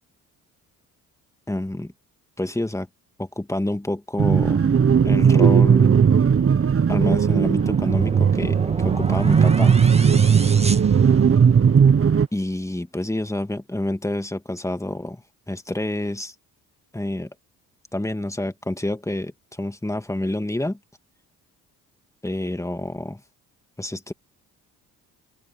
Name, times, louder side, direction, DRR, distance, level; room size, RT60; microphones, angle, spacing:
voice 1, 1.5-1.9 2.4-2.9 3.2-4.6 5.0-6.0 6.9-8.6 8.8-9.8 12.3-15.2 15.5-16.3 16.9-17.3 17.9-20.8 22.2-23.2 23.8-24.1, left 1 dB, 5° left, 2.3 m, -28 dB
sound 1, 4.2-12.3, right 7 dB, 35° right, 1.2 m, -17 dB
sound 2, 7.1-11.7, right 2 dB, 15° right, 1.9 m, -33 dB
open air
supercardioid pair, 60°, 40 cm